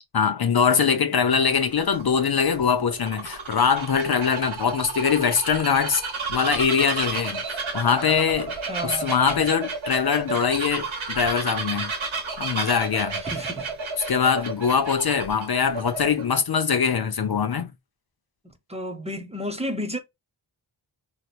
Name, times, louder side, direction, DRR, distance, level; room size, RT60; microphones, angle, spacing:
voice 1, 0.1-6.0 6.3-7.4 7.7-8.5 8.8-11.9 12.4-13.2 14.1-17.7, left 6 dB, 55° left, 0.6 m, -22 dB
Bird vocalization bird call bird song, 1.3-16.4, right 4 dB, 85° right, 1.1 m, -32 dB
voice 2, 8.6-9.2 13.2-13.7 18.7-20.0, equal, 15° right, 0.9 m, -31 dB
3.0 x 2.9 x 2.2 m
cardioid pair, 50°, 46 cm